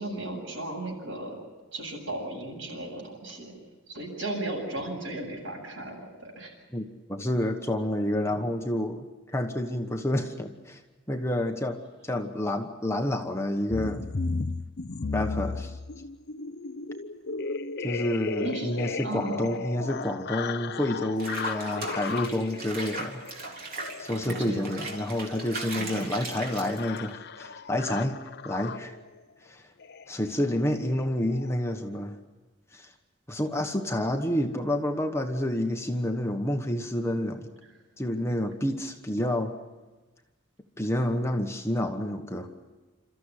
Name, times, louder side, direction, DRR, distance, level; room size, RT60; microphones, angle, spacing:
voice 1, 0.0-1.4 1.7-3.5 3.9-6.5 18.4-19.5 24.1-24.7 25.8-26.1, right 2 dB, 65° right, -1 dB, 7.9 m, -36 dB
voice 2, 7.1-10.8 11.1-14.1 15.1-15.8 17.8-23.2 24.0-29.0 29.4-29.7 30.1-32.1 32.7-32.9 33.3-37.5 38.0-39.5 40.8-42.5, left 1 dB, 15° left, 4 dB, 1.2 m, -29 dB
sound 1, 13.7-29.1 29.8-30.1 30.3-30.6 30.8-31.0 31.3-31.5, left 4 dB, 55° left, 0.7 m, -36 dB
Water / Bathtub (filling or washing), 21.2-27.1, right 3 dB, 45° right, 3.7 m, -38 dB
28.5 x 14.0 x 9.9 m, 1.2 s
head